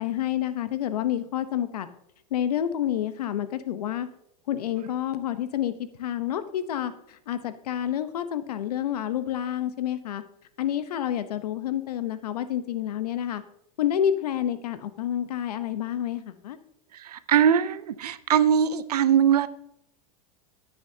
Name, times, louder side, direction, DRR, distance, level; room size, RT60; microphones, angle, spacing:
voice 1, 0.0-1.9 2.3-4.1 4.5-10.2 10.6-13.4 13.8-16.6, left 10 dB, 85° left, 12 dB, 0.9 m, -29 dB
voice 2, 16.9-19.5, right 8 dB, 90° right, 15 dB, 0.7 m, -21 dB
18.0 x 7.0 x 2.8 m, 0.78 s
hypercardioid pair, 105°, 19 cm